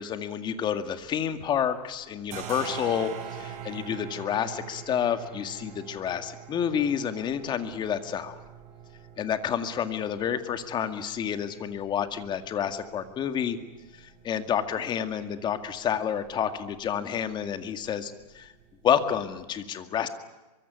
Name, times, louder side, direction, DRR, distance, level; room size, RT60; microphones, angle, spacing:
voice 1, 0.0-8.4 9.2-13.6 13.9-18.5 18.8-20.1, left 8 dB, 20° left, 9 dB, 2.1 m, -29 dB
sound 1, 0.7-1.7 1.9-19.4, right 8 dB, 35° right, 5.3 m, -45 dB
24.0 x 23.5 x 8.3 m, 1.1 s
hypercardioid pair, 145°, 21 cm